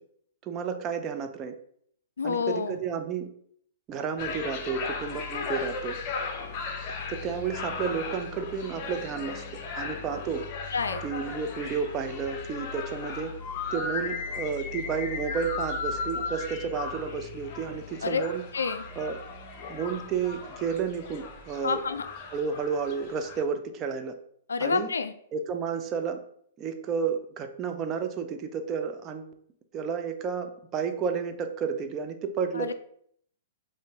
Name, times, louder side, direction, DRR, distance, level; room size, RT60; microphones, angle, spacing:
voice 1, 0.4-1.5 2.2-3.3 3.9-6.0 7.1-9.4 9.8-10.4 11.0-13.3 13.7-18.4 19.0-19.2 19.7-21.8 22.3-24.1 24.6-24.9 25.3-26.2 26.6-29.3 29.7-32.7, right 6 dB, 30° right, 6 dB, 0.5 m, -31 dB
voice 2, 2.2-2.8 10.7-11.0 18.0-18.2 18.5-18.8 21.6-22.0 24.5-25.1 32.5-32.7, left 5 dB, 75° left, 10 dB, 0.3 m, -28 dB
sound 1, 4.2-23.4, left 4 dB, 40° left, 0.6 m, -36 dB
5.3 x 2.6 x 3.6 m, 0.65 s
figure-of-eight pair, 110°, 0 cm